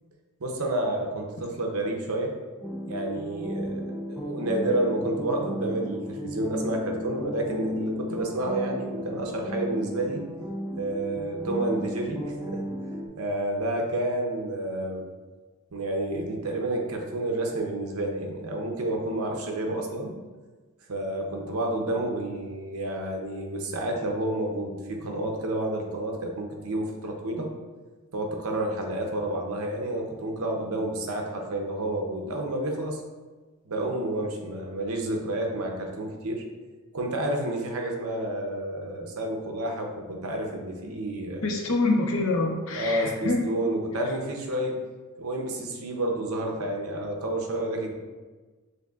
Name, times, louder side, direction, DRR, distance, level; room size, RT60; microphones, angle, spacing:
voice 1, 0.4-2.3 2.9-3.8 4.1-10.2 10.8-12.6 13.2-15.0 15.7-20.1 20.9-27.5 28.1-33.0 33.7-36.4 36.9-41.4 42.7-44.8 45.2-47.9, right 1 dB, 85° right, 2 dB, 0.7 m, -30 dB
sound 1, 2.6-13.1, equal, ahead, 0.3 m, -34 dB
voice 2, 41.4-43.5, left 2 dB, 70° left, 2 dB, 0.6 m, -25 dB
6.3 x 2.6 x 2.4 m, 1.3 s
head